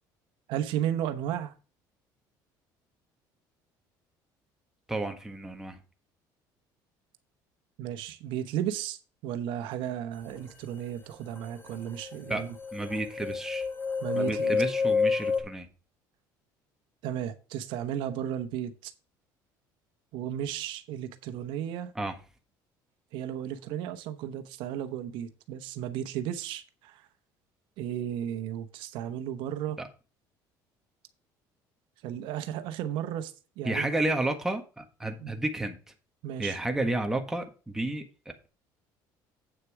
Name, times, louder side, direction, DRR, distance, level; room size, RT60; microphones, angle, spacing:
voice 1, 0.5-1.5 7.8-12.5 14.0-14.6 17.0-18.9 20.1-21.9 23.1-27.0 27.8-29.8 32.0-33.9 35.2-35.3 36.2-36.6, right 10 dB, 75° right, 1.0 m, -34 dB
voice 2, 4.9-5.8 12.3-12.4 12.7-13.7 14.2-15.7 21.9-22.1 29.8-29.9 33.6-35.8 36.4-38.0, right 2 dB, 5° right, 1.5 m, -31 dB
sound 1, 11.4-11.5 11.7-15.4, left 5 dB, 25° left, 2.2 m, -29 dB
8.4 x 6.6 x 4.8 m
cardioid pair, 130°, 8 cm